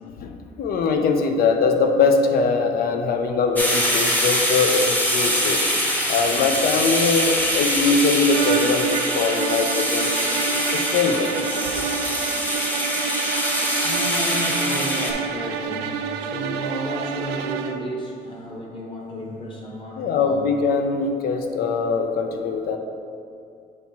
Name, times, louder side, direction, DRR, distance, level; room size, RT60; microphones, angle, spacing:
voice 1, 0.6-5.7 6.1-10.1 10.7-11.3 11.7-11.9 20.0-22.8, left 4 dB, 60° left, 5 dB, 0.6 m, -22 dB
sound 1, 3.6-15.1, equal, 10° left, 0.9 m, -24 dB
sound 2, 8.2-17.9, right 7 dB, 80° right, 0.4 m, -28 dB
voice 2, 13.8-20.4, equal, 30° left, -1 dB, 1.1 m, -32 dB
7.7 x 4.6 x 2.8 m, 2.5 s
cardioid pair, 110°, 17 cm